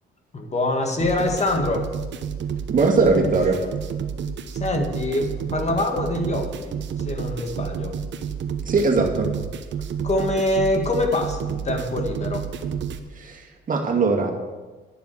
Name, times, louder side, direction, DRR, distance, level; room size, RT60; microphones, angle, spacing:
voice 1, 0.3-1.9 4.6-6.8 7.1-7.9 10.0-12.5, left 2 dB, 35° left, 4 dB, 1.8 m, -24 dB
sound 1, 1.0-13.0, right 7 dB, 65° right, 1.0 m, -30 dB
voice 2, 2.7-3.6 8.6-9.3 13.1-14.3, right 4 dB, 40° right, 1 dB, 2.3 m, -20 dB
11.0 x 7.0 x 8.1 m, 1.3 s
cardioid pair, 90°, 20 cm